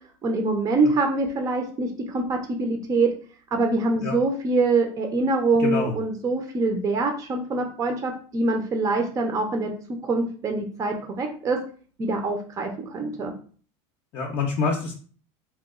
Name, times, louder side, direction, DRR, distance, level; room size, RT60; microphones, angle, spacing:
voice 1, 0.2-3.1 3.5-9.7 10.1-11.6 12.0-13.3, right 3 dB, 20° right, 4 dB, 0.5 m, -24 dB
voice 2, 5.6-5.9 14.1-15.0, left 4 dB, 40° left, 1 dB, 0.5 m, -26 dB
2.9 x 2.1 x 3.6 m, 0.42 s
supercardioid pair, 145°, 15 cm